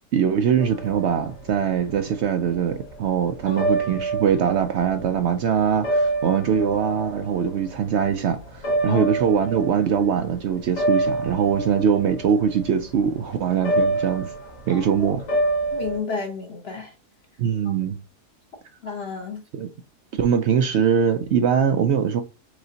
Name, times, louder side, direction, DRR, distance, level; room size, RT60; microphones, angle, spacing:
voice 1, 0.1-14.3 14.7-15.2 17.4-18.0 19.5-19.7 20.2-22.2, right 7 dB, 80° right, 0.6 m, -22 dB
sound 1, 0.6-10.3 10.6-16.0, right 2 dB, 85° left, 2.1 m, -27 dB
voice 2, 3.5-3.8 8.8-9.1 14.7-15.1 15.7-16.9 17.6-17.8 18.8-19.4, left 5 dB, 50° left, 0.8 m, -31 dB
4.9 x 3.9 x 2.7 m
omnidirectional pair, 1.7 m